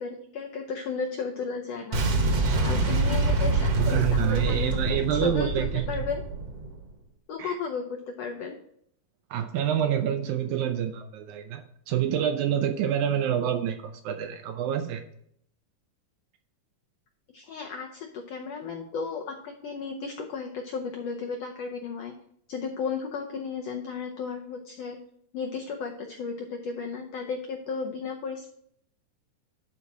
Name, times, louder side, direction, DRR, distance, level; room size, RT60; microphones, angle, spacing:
voice 1, 0.0-2.0 2.6-6.2 7.3-8.6 17.3-22.1 22.5-25.0 25.3-28.5, left 5 dB, 85° left, 2 dB, 1.4 m, -34 dB
Boom, 1.9-6.8, right 2 dB, 60° right, 1.7 m, -26 dB
voice 2, 3.6-6.1 7.4-7.6 9.3-15.0, right 9 dB, 80° right, 7 dB, 1.8 m, -27 dB
11.0 x 4.1 x 4.7 m, 0.70 s
omnidirectional pair, 3.8 m